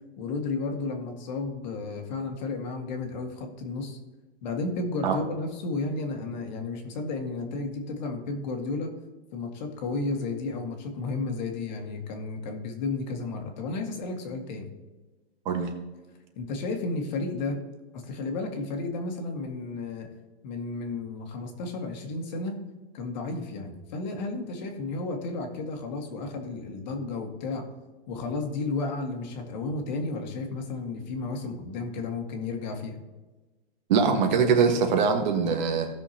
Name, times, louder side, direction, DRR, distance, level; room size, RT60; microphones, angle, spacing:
voice 1, 0.2-4.0 4.4-8.9 9.3-14.7 16.4-17.6 17.9-20.1 20.4-22.6 22.9-27.6 28.1-33.0, left 3 dB, 45° left, 3 dB, 1.8 m, -33 dB
voice 2, 33.9-35.9, right 5 dB, 45° right, 4 dB, 1.6 m, -22 dB
16.5 x 6.2 x 2.9 m, 1.2 s
hypercardioid pair, 155°, 31 cm